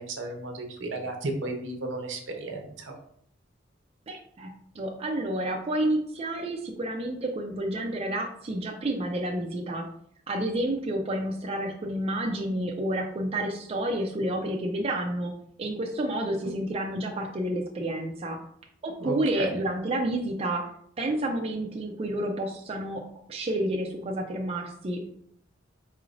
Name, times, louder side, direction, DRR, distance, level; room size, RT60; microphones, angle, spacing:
voice 1, 0.0-2.9 19.0-19.6, right 2 dB, 75° right, 3 dB, 0.8 m, -34 dB
voice 2, 4.1-9.8 10.3-15.3 15.6-18.4 18.8-20.7 21.0-23.0 23.3-25.1, right 1 dB, 30° right, 1 dB, 0.4 m, -30 dB
4.6 x 3.1 x 2.5 m, 0.67 s
head